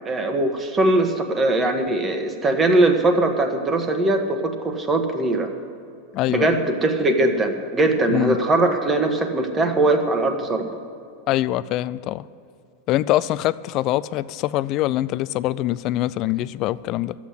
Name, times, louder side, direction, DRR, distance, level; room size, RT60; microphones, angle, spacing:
voice 1, 0.0-5.5 6.3-10.7, right 2 dB, 15° right, 5 dB, 1.4 m, -21 dB
voice 2, 6.1-6.6 8.1-8.4 11.3-12.3 12.9-17.2, left 15 dB, 40° left, 17 dB, 0.4 m, -23 dB
13.0 x 8.5 x 9.7 m, 2.4 s
supercardioid pair, 155°, 0 cm